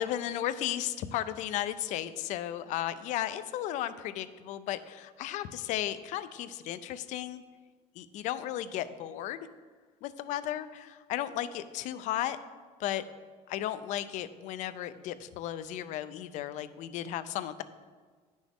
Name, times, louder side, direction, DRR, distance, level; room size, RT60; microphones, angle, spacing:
voice 1, 0.0-7.4 8.0-9.5 10.0-12.4 12.8-13.0 13.5-17.6, left 12 dB, 60° left, 13 dB, 0.5 m, -34 dB
10.0 x 6.2 x 3.5 m, 1.5 s
cardioid pair, 155°, 14 cm